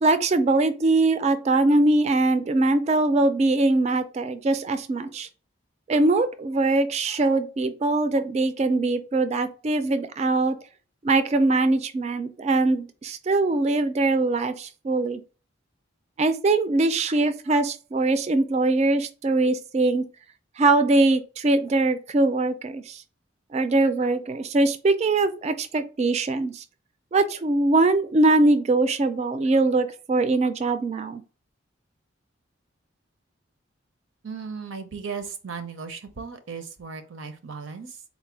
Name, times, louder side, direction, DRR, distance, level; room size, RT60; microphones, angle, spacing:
voice 1, 0.0-5.3 5.9-10.6 11.0-15.2 16.2-20.0 20.6-23.0 23.5-26.6 27.1-31.2, right 2 dB, 35° right, 0.3 m, -22 dB
voice 2, 34.2-38.0, right 5 dB, 75° right, 0.6 m, -36 dB
4.0 x 2.1 x 4.4 m
head